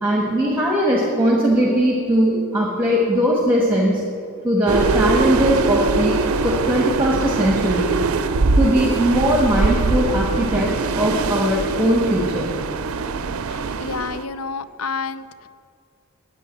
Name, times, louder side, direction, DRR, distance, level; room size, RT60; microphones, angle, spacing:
voice 1, 0.0-4.0 4.4-6.2 6.4-7.9 8.6-12.5, equal, 10° right, -2 dB, 1.3 m, -19 dB
sound 1, 4.7-14.2, right 4 dB, 80° right, 0.5 m, -22 dB
voice 2, 13.5-15.5, left 4 dB, 75° left, 14 dB, 0.5 m, -30 dB
9.2 x 8.2 x 8.6 m, 2.3 s
head